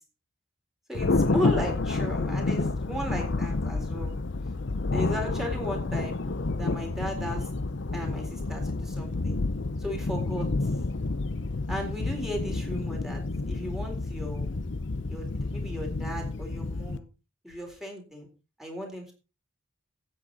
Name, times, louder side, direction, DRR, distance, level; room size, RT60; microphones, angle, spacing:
Thunder, 0.9-17.0, left 3 dB, 60° left, 0.7 m, -29 dB
voice 1, 0.9-4.1 4.9-6.2 6.5-7.5 7.9-9.4 9.8-10.8 11.7-14.5 15.1-17.1 17.4-18.3 18.6-19.1, equal, ahead, 1 dB, 3.9 m, -36 dB
13.0 x 9.2 x 4.1 m, 0.32 s
head